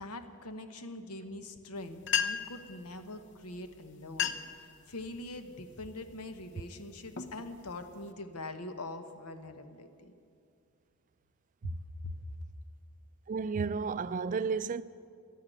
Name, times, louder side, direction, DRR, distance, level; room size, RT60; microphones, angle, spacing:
voice 1, 0.0-10.1 11.6-11.7 12.0-12.1, left 2 dB, 90° left, 1.1 m, -43 dB
sound 1, 1.8-1.9 2.0-2.6 3.5-3.7 4.0-4.6 5.1-5.5 6.1-6.3 6.9-8.1, left 8 dB, 55° left, 0.6 m, -34 dB
voice 2, 13.3-14.8, right 5 dB, 35° right, 0.3 m, -32 dB
12.5 x 10.0 x 9.1 m
head